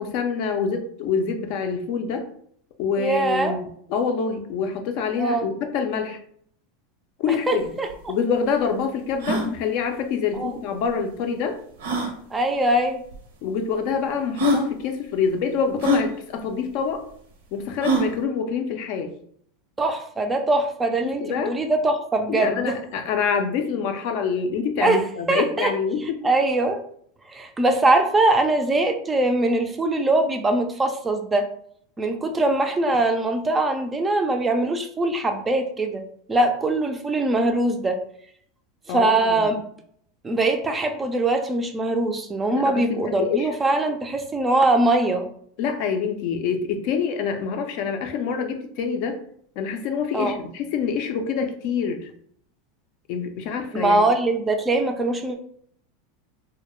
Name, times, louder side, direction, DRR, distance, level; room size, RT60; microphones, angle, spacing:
voice 1, 0.0-2.3 2.8-6.2 7.2-7.7 8.1-11.6 13.4-17.1 17.5-19.1 21.0-21.6 22.3-26.2 38.9-39.5 42.5-43.5 45.6-49.2 49.6-52.1 53.1-54.0, left 6 dB, 60° left, 6 dB, 0.4 m, -26 dB
voice 2, 3.0-3.6 5.2-5.5 7.5-7.9 10.3-10.5 12.3-13.0 19.8-22.7 24.8-25.0 25.3-25.7 26.2-26.8 27.3-31.5 32.0-36.0 36.3-38.0 38.9-39.6 40.2-45.3 50.1-50.4 53.7-55.4, right 2 dB, 15° right, 5 dB, 0.3 m, -22 dB
sound 1, 7.6-7.7 7.9-8.0 8.5-8.6 9.1-9.5 10.8-10.9 11.8-12.1 13.1-13.2 13.9-14.0 14.4-14.7 15.8-16.1 17.8-18.1, equal, 85° right, 0.6 m, -23 dB
2.2 x 2.0 x 2.9 m, 0.64 s
supercardioid pair, 120°, 0 cm